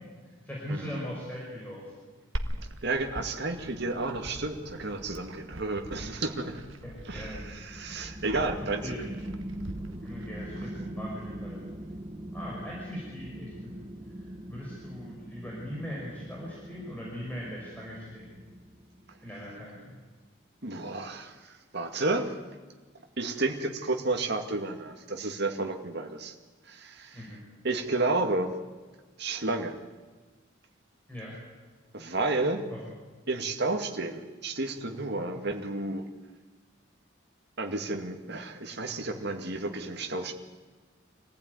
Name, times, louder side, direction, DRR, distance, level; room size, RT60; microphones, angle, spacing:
voice 1, 0.0-1.9 6.4-6.5 6.8-7.4 8.6-9.1 10.0-11.7 12.3-13.7 14.1-18.4 19.2-20.0 27.1-27.4 31.1-31.4 32.7-32.8, equal, 10° left, -5 dB, 5.6 m, -40 dB
voice 2, 0.7-1.1 2.8-6.6 7.1-8.9 20.6-22.3 23.2-26.3 26.6-27.3 27.6-28.6 29.2-29.8 31.9-32.7 33.3-36.1 37.6-40.3, right 2 dB, 55° right, 4 dB, 2.2 m, -31 dB
Glass, 2.4-10.3, right 1 dB, 70° right, 1.6 m, -41 dB
sound 1, 7.4-19.5, right 1 dB, 25° right, 1.5 m, -42 dB
25.5 x 15.5 x 9.6 m, 1.4 s
head